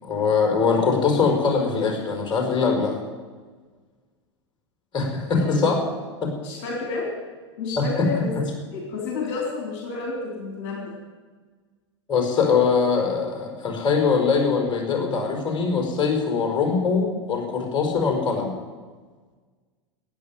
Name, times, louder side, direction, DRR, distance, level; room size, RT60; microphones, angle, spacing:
voice 1, 0.0-3.0 4.9-5.8 6.2-6.3 7.8-8.1 12.1-18.5, left 5 dB, 30° left, 1 dB, 5.2 m, -22 dB
voice 2, 5.4-5.8 6.4-7.1 7.6-8.3 8.7-10.9, left 4 dB, 55° left, -1 dB, 3.9 m, -30 dB
16.0 x 9.3 x 9.5 m, 1.4 s
hypercardioid pair, 95°, 15 cm